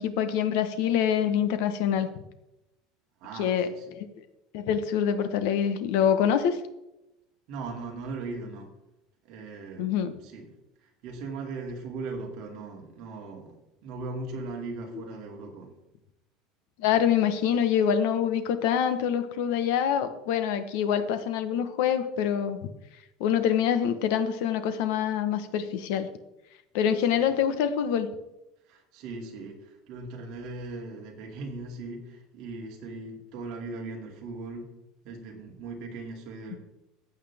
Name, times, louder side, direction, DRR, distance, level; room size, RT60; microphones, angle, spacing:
voice 1, 0.0-2.1 3.3-4.1 4.5-6.6 9.8-10.1 16.8-22.6 23.2-26.1 26.7-28.1, left 8 dB, 65° left, 10 dB, 1.2 m, -25 dB
voice 2, 3.2-4.0 7.5-8.7 9.2-10.0 10.2-10.4 10.8-15.7 27.0-27.3 28.7-34.7 35.0-36.6, right 3 dB, 45° right, 0 dB, 2.6 m, -39 dB
15.0 x 8.5 x 3.6 m, 0.91 s
cardioid pair, 175°, 0 cm